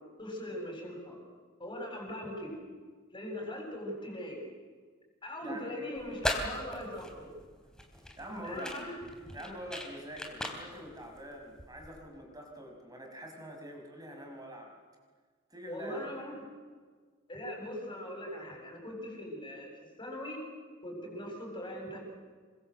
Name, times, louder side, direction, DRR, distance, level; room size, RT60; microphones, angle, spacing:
voice 1, 0.2-1.2 1.6-2.6 3.1-4.4 5.2-7.4 8.4-9.0 15.7-16.4 17.3-19.7 20.0-20.4 20.8-22.0, left 1 dB, 25° left, 1 dB, 7.7 m, -40 dB
sound 1, 6.0-12.0, left 1 dB, 5° left, 3.8 m, -39 dB
voice 2, 8.2-8.8 9.3-14.7 15.5-16.2, equal, 20° right, 2 dB, 6.0 m, -45 dB
28.0 x 24.5 x 7.9 m, 1.5 s
head